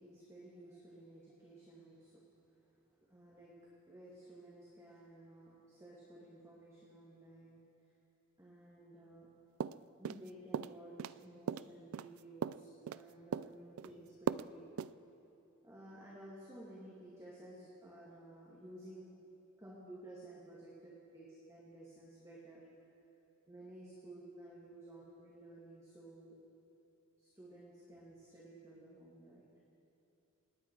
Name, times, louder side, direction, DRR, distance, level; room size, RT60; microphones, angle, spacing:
voice 1, 0.0-2.2 3.1-3.5 3.9-7.6 8.4-9.3 10.0-14.7 15.6-19.1 19.6-20.7 21.1-22.6 23.5-26.4 27.2-29.4, right 1 dB, 15° right, -6 dB, 2.2 m, -54 dB
sound 1, 9.6-10.3 10.5-11.2 11.5-13.0 13.3-13.9 14.3-14.5 14.8-14.9, right 7 dB, 75° right, 0.3 m, -38 dB
28.5 x 9.7 x 4.7 m, 2.9 s
head